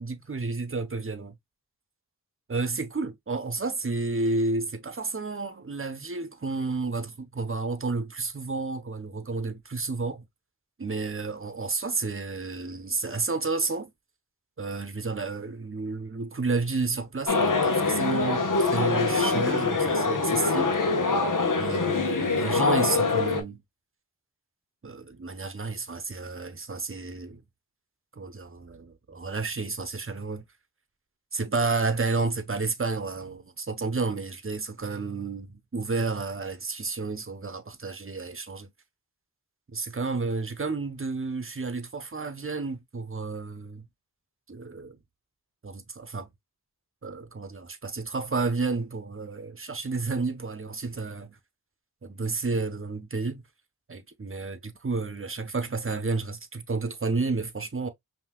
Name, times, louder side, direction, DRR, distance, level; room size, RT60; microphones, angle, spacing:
voice 1, 0.0-1.3 2.5-10.3 10.8-13.9 14.6-20.8 21.6-23.6 24.8-27.4 28.2-30.4 31.3-38.7 39.7-43.9 44.5-45.0 45.6-46.3 47.0-51.4 52.0-53.4 53.9-57.9, right 3 dB, 35° right, 0.9 m, -31 dB
sound 1, 17.3-23.4, left 4 dB, 60° left, 1.2 m, -24 dB
5.5 x 2.9 x 2.3 m
cardioid pair, 45°, 35 cm